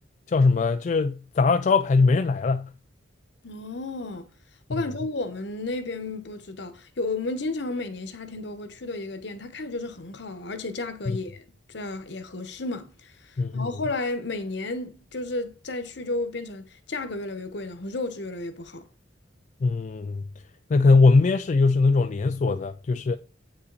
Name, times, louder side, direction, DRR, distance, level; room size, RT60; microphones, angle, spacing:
voice 1, 0.3-2.7 4.7-4.8 11.1-11.2 13.4-13.7 19.6-20.2 20.7-23.2, left 4 dB, 40° left, 0.3 m, -21 dB
voice 2, 3.4-4.3 4.7-13.1 13.5-18.9, left 2 dB, 65° left, 1.0 m, -32 dB
8.3 x 5.6 x 4.0 m
head